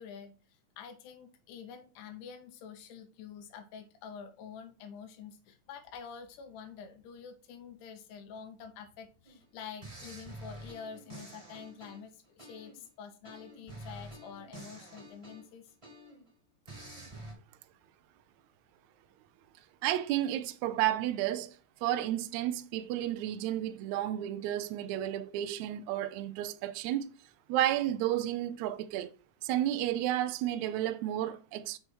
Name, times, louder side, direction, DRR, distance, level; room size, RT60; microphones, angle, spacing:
voice 1, 0.0-15.7, left 7 dB, 85° left, 2.3 m, -47 dB
sound 1, 9.2-9.4 9.8-12.9 13.2-16.3 16.7-17.3, right 1 dB, 15° right, 1.2 m, -48 dB
voice 2, 19.8-21.5 21.8-27.1 27.5-29.2 29.4-31.8, right 12 dB, 80° right, 1.8 m, -32 dB
6.3 x 4.6 x 4.5 m
omnidirectional pair, 3.6 m